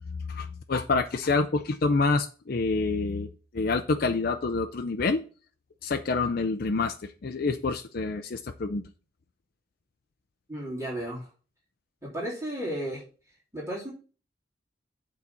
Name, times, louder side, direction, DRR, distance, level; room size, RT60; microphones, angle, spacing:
voice 1, 0.3-3.3 3.5-5.2 5.8-6.9 7.2-8.8, left 3 dB, 55° left, 6 dB, 0.5 m, -27 dB
voice 2, 10.5-11.3 12.0-13.0 13.5-13.9, right 1 dB, 20° right, -6 dB, 3.5 m, -33 dB
8.6 x 4.0 x 7.0 m, 0.36 s
head